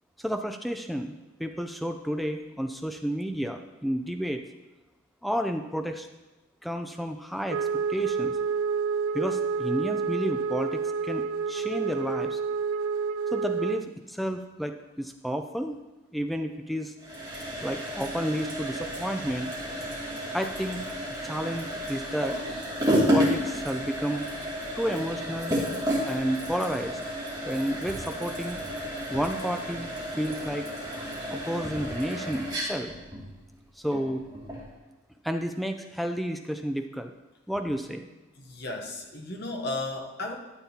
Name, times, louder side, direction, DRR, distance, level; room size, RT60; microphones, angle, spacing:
voice 1, 0.2-1.1 1.4-4.4 5.2-6.1 6.6-8.4 9.1-12.4 13.3-15.8 16.1-16.9 17.6-19.5 20.3-20.8 21.2-22.4 23.1-24.3 24.8-25.5 26.0-27.0 27.4-28.6 29.1-29.9 30.2-30.7 31.3-32.9 33.8-34.2 35.2-37.1 37.5-38.1, equal, ahead, 5 dB, 0.4 m, -31 dB
Wind instrument woodwind instrument, 7.5-13.9, right 5 dB, 90° right, 0.4 m, -29 dB
sound 1, 17.0-34.7, equal, 20° right, 2.4 m, -31 dB
voice 2, 38.4-40.4, left 2 dB, 50° left, 1 dB, 1.0 m, -34 dB
12.5 x 7.5 x 2.9 m, 1.1 s
head